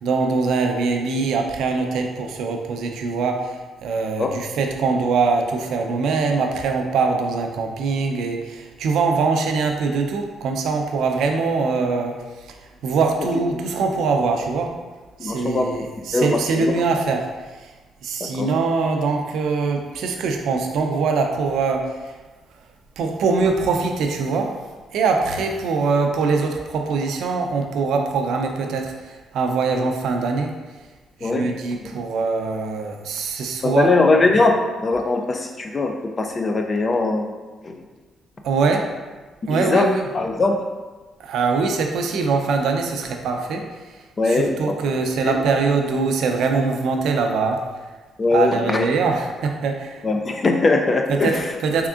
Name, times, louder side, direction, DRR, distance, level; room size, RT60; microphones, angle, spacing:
voice 1, 0.0-12.1 12.5-12.6 12.8-14.7 15.2-17.3 17.6-17.7 18.0-21.9 23.0-24.5 24.9-30.6 31.2-33.9 38.4-38.9 39.5-40.1 41.2-43.6 44.3-47.6 48.3-50.0 51.1-51.9, right 4 dB, 80° right, 3 dB, 0.4 m, -22 dB
voice 2, 15.2-15.8 16.1-16.7 18.4-18.5 31.2-31.5 31.9-32.0 33.6-37.3 37.6-37.7 39.4-40.6 44.2-44.8 45.2-45.4 48.2-48.9 50.0-51.5, left 3 dB, 35° left, 4 dB, 0.3 m, -21 dB
3.6 x 3.5 x 2.4 m, 1.3 s
cardioid pair, 90°, 0 cm